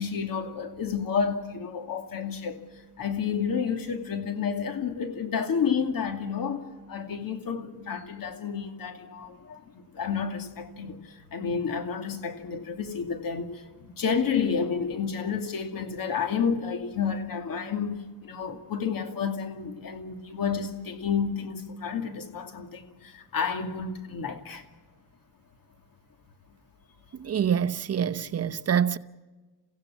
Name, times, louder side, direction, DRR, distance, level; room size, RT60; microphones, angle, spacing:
voice 1, 0.0-24.7, left 6 dB, 60° left, 2.5 m, -30 dB
voice 2, 27.2-29.0, right 8 dB, 40° right, 0.8 m, -26 dB
30.0 x 16.0 x 7.2 m
cardioid pair, 115°, 38 cm